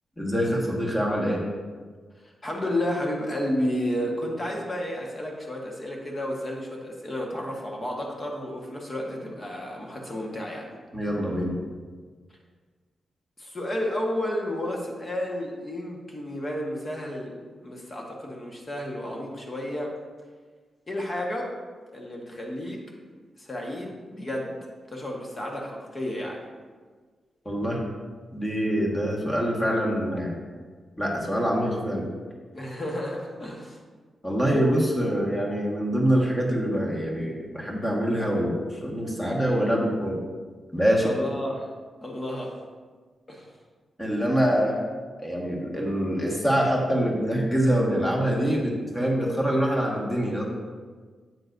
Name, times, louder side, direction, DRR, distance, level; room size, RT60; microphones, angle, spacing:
voice 1, 0.2-1.4 10.9-11.7 27.4-27.8 28.3-30.3 31.0-32.0 34.2-40.2 40.7-41.1 44.0-44.8 45.2-50.4, equal, 10° left, -2 dB, 1.6 m, -25 dB
voice 2, 2.1-10.7 13.4-19.9 20.9-21.5 21.9-22.8 23.4-24.5 24.9-26.4 32.5-33.8 41.0-41.7 42.0-42.6 43.3-43.5, left 1 dB, 30° left, -1 dB, 1.3 m, -31 dB
9.7 x 8.0 x 2.6 m, 1.5 s
wide cardioid pair, 140°, 0 cm